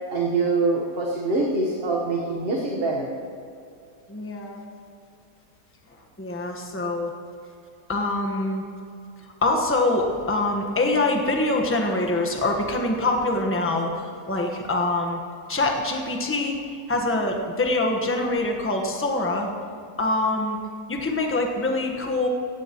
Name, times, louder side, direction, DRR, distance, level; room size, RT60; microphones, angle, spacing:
voice 1, 0.1-3.1, right 3 dB, 40° right, -2 dB, 1.4 m, -24 dB
voice 2, 4.1-4.6 6.2-7.1 7.9-8.6 9.4-15.2 15.5-16.6 16.9-19.5 20.0-20.6 20.9-22.3, left 2 dB, 10° left, 2 dB, 1.1 m, -24 dB
18.0 x 15.5 x 3.0 m, 2.5 s
omnidirectional pair, 1.8 m